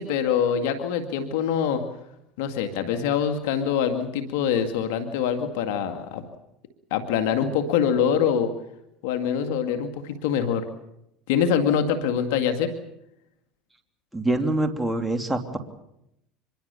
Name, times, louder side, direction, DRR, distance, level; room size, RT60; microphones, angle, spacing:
voice 1, 0.0-1.8 2.4-6.2 6.9-8.5 9.0-10.6 11.3-12.7, left 8 dB, 80° left, 7 dB, 2.3 m, -24 dB
voice 2, 14.1-15.6, right 2 dB, 5° right, 5 dB, 2.9 m, -25 dB
25.5 x 22.0 x 7.0 m, 0.81 s
supercardioid pair, 100°, 0 cm